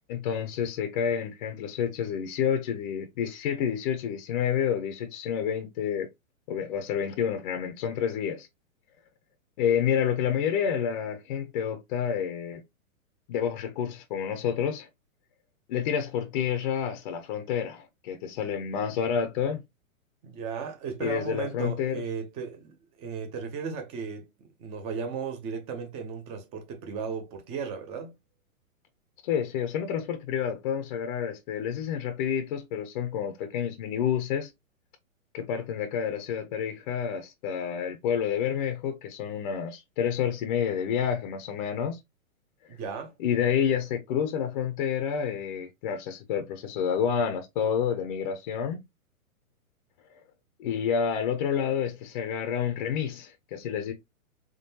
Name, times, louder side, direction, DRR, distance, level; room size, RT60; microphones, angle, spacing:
voice 1, 0.1-6.1 6.5-8.5 9.6-12.6 13.3-14.9 15.7-19.6 21.0-22.0 29.2-34.5 35.3-42.0 43.2-48.9 50.6-53.9, left 8 dB, 35° left, 0.5 m, -29 dB
voice 2, 20.2-28.1 42.7-43.1, right 5 dB, 15° right, 0.4 m, -35 dB
3.7 x 3.2 x 2.7 m
hypercardioid pair, 135°, 42 cm